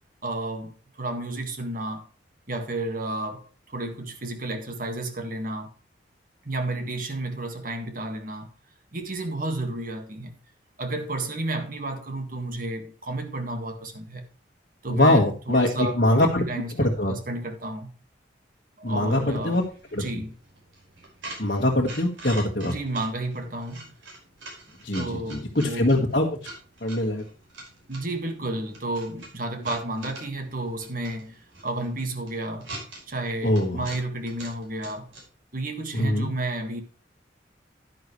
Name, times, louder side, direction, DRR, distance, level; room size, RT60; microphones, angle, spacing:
voice 1, 0.2-2.1 2.5-5.7 6.4-8.5 8.9-10.4 10.8-14.3 14.8-17.9 18.8-19.6 19.9-20.3 22.7-23.9 24.9-25.9 27.9-32.7 33.1-35.1 35.5-36.8, right 2 dB, 45° right, 1.8 m, -32 dB
voice 2, 14.9-16.5 16.8-17.1 18.8-19.6 19.9-20.0 21.4-22.7 24.8-26.4 26.8-27.2 33.4-33.8 35.9-36.3, left 1 dB, 50° left, 1.6 m, -23 dB
sound 1, 19.0-35.3, right 2 dB, 90° right, 5.2 m, -45 dB
11.0 x 10.5 x 3.2 m
head